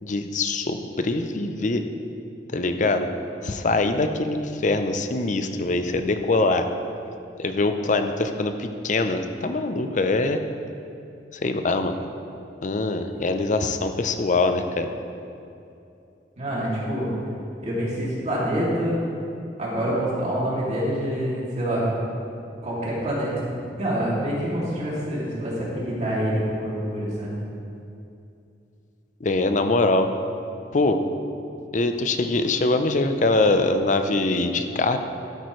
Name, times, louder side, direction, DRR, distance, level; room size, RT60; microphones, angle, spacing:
voice 1, 0.0-1.8 2.5-3.1 3.4-6.7 7.4-10.4 11.3-12.0 12.6-14.9 29.2-30.1 30.7-31.0 31.7-35.0, left 2 dB, 45° left, 7 dB, 0.6 m, -23 dB
voice 2, 16.4-17.2 17.6-19.0 19.6-21.9 22.6-23.3 23.6-27.3, equal, 40° right, -6 dB, 2.6 m, -26 dB
12.5 x 9.1 x 3.2 m, 2.6 s
head